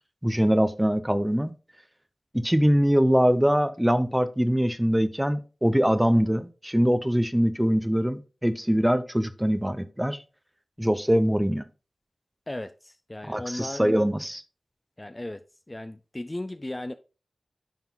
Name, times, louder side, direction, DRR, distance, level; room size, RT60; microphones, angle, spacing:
voice 1, 0.2-1.5 2.3-10.2 10.8-11.6 13.2-14.4, equal, 10° right, 0.8 m, -23 dB
voice 2, 12.5-13.8 15.0-15.4 15.7-16.9, left 1 dB, 25° left, 0.4 m, -36 dB
10.5 x 3.8 x 3.7 m
wide cardioid pair, 55°, 0 cm